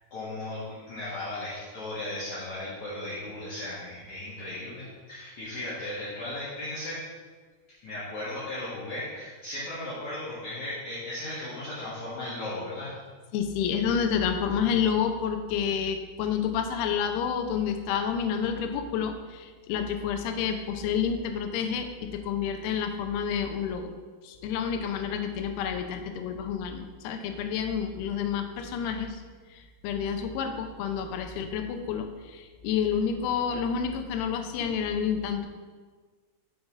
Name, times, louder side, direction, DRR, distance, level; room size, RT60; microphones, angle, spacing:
voice 1, 0.1-7.0 7.7-13.0 34.6-34.7, left 1 dB, 60° left, -10 dB, 2.3 m, -36 dB
voice 2, 13.3-23.9 24.2-29.2 29.8-35.5, left 7 dB, 85° left, 6 dB, 2.6 m, -29 dB
5.9 x 5.3 x 5.3 m, 1.4 s
omnidirectional pair, 4.6 m